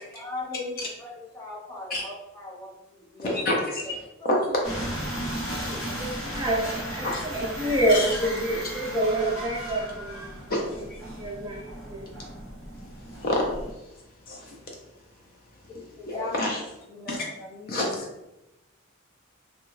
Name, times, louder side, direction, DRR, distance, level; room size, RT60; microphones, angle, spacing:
voice 1, 0.0-0.7 1.0-2.7 3.1-3.4 5.1-5.3 5.6-5.9 16.0-16.3 16.9-17.8, left 2 dB, 15° left, -6 dB, 0.8 m, -38 dB
voice 2, 3.2-4.7 7.0-7.3 7.9-8.2 10.5-11.0 13.1-13.5 14.3-14.6 16.1-16.6 17.1-17.2 17.7-18.0, left 1 dB, 45° left, -1 dB, 0.4 m, -28 dB
sound 1, 4.6-13.7, equal, 65° left, 0.9 m, -35 dB
voice 3, 5.9-10.3 11.1-11.6 11.9-12.0, right 1 dB, 20° right, -3 dB, 0.4 m, -27 dB
2.6 x 2.2 x 3.0 m, 0.92 s
head